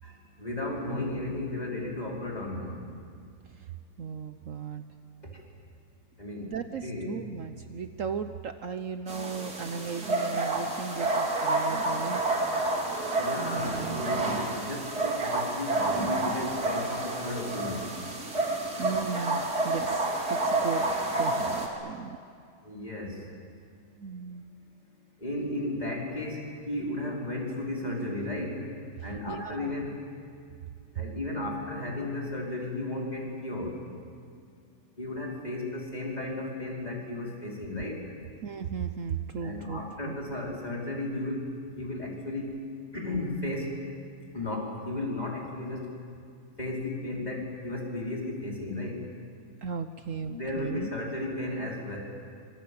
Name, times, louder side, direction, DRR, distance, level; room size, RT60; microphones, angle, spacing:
voice 1, 0.0-2.8 5.2-5.3 6.2-6.6 6.8-7.1 13.2-14.3 14.6-17.9 22.6-23.3 25.2-28.6 29.0-30.0 30.9-33.7 35.0-38.0 39.4-42.6 42.9-43.8 44.3-45.9 46.6-49.0 50.3-52.0, left 2 dB, 25° left, -3 dB, 5.3 m, -34 dB
voice 2, 4.0-4.8 6.4-12.2 13.4-14.0 18.8-20.8 21.2-22.2 24.0-24.4 29.0-29.9 38.4-40.2 49.6-50.9, right 6 dB, 60° right, 9 dB, 1.2 m, -36 dB
sound 1, 9.1-21.7, right 2 dB, 75° right, 3.7 m, -29 dB
26.0 x 24.5 x 8.8 m, 2.3 s
omnidirectional pair, 1.7 m